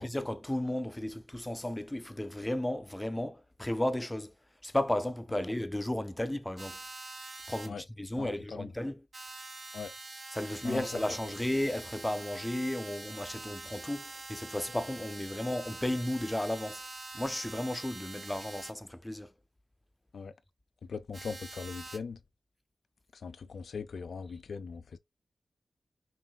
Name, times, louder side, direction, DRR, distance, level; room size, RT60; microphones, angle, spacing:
voice 1, 0.0-4.3 4.6-6.8 7.5-9.1 10.3-16.8 17.1-19.3, left 1 dB, 15° left, 0.4 m, -34 dB
sound 1, 6.6-7.7 9.1-18.7 21.1-22.0, right 3 dB, 50° right, 1.2 m, -45 dB
voice 2, 8.2-8.7 9.7-9.9 10.6-10.9 20.1-20.3 20.9-22.2 23.1-25.0, left 5 dB, 85° left, 0.3 m, -40 dB
5.8 x 2.5 x 2.2 m
cardioid pair, 60°, 0 cm